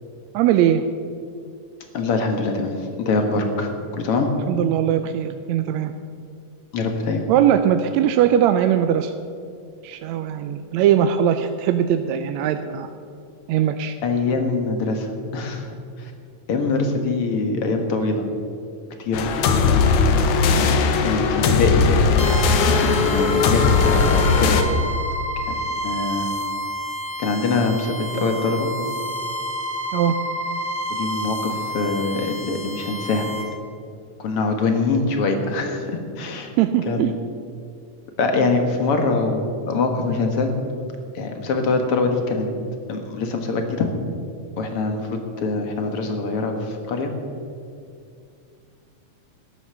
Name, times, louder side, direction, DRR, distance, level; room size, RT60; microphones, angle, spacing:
voice 1, 0.3-0.8 4.5-5.9 7.3-9.1 9.8-12.9 13.5-14.0 29.9-30.2 36.6-37.1, right 10 dB, 80° right, 8 dB, 1.8 m, -20 dB
voice 2, 1.9-4.3 6.7-7.2 14.0-15.1 15.3-15.7 16.0-16.1 16.5-18.3 19.0-19.3 21.0-21.8 22.7-24.6 25.5-25.6 25.8-26.3 27.2-28.7 31.0-33.3 34.2-36.5 36.9-37.0 38.2-40.5 41.1-42.5 42.9-43.9 44.6-47.1, left 3 dB, 55° left, 5 dB, 2.1 m, -23 dB
sound 1, 19.1-24.6, left 4 dB, 80° left, 2.4 m, -18 dB
sound 2, 22.2-33.4, equal, 10° left, 1.8 m, -30 dB
13.0 x 10.5 x 6.7 m, 2.4 s
omnidirectional pair, 3.4 m